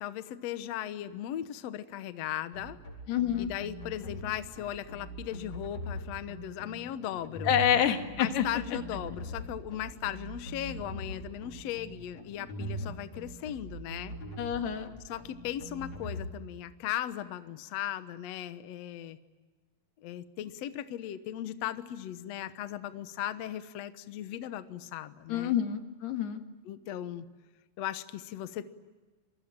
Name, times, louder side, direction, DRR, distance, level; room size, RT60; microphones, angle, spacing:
voice 1, 0.0-2.8 3.4-7.6 8.2-14.2 15.0-19.2 20.0-25.6 26.6-27.2 27.8-28.7, left 12 dB, 70° left, 11 dB, 1.6 m, -37 dB
sound 1, 2.5-16.2, right 1 dB, 45° left, 6.0 m, -41 dB
voice 2, 3.1-3.5 7.4-8.5 14.4-14.9 25.3-26.4, left 9 dB, 90° left, 6 dB, 3.8 m, -27 dB
27.5 x 22.0 x 8.8 m, 1.3 s
omnidirectional pair, 4.5 m